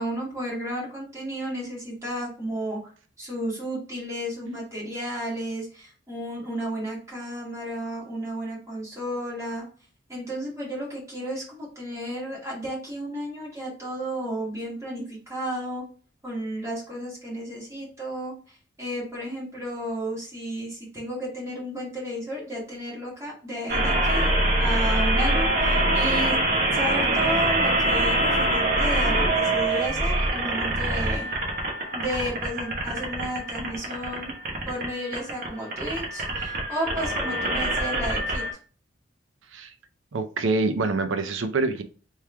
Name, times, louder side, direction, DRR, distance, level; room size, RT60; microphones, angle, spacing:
voice 1, 0.0-2.8 3.2-9.7 10.1-15.8 16.2-24.3 24.6-26.4 26.7-31.3 31.9-34.4 34.7-38.4, equal, 15° right, -5 dB, 1.8 m, -33 dB
sound 1, 23.7-38.5, right 1 dB, 45° right, 1.0 m, -24 dB
voice 2, 40.1-41.8, right 3 dB, 80° right, 9 dB, 0.5 m, -25 dB
3.4 x 3.2 x 3.3 m, 0.39 s
head